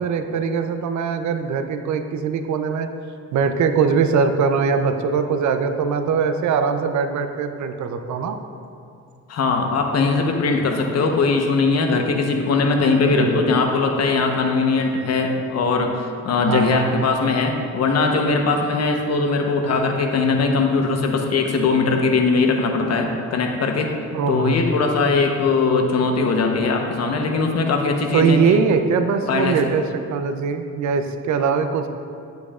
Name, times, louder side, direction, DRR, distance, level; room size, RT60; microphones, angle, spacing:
voice 1, 0.0-2.9 3.3-8.4 13.1-13.3 16.4-17.1 24.1-24.6 28.1-31.9, right 5 dB, 70° right, 8 dB, 0.7 m, -21 dB
voice 2, 9.3-23.9 24.3-28.6 29.3-29.6, left 4 dB, 55° left, 3 dB, 1.0 m, -20 dB
10.5 x 8.2 x 2.5 m, 2.4 s
cardioid pair, 90°, 30 cm